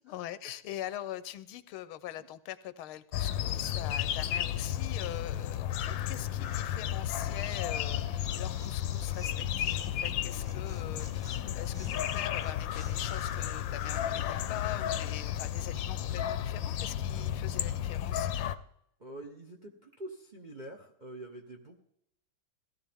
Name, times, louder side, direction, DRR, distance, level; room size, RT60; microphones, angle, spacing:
voice 1, 0.0-18.3, left 12 dB, 90° left, 15 dB, 1.5 m, -43 dB
sound 1, 3.1-18.6, left 11 dB, 70° left, 1.2 m, -33 dB
Tearing, 8.2-10.1 10.4-13.5, left 1 dB, ahead, 1.1 m, -54 dB
voice 2, 19.0-21.8, right 1 dB, 35° right, 3 dB, 0.7 m, -46 dB
16.5 x 13.0 x 3.6 m, 0.75 s
omnidirectional pair, 2.3 m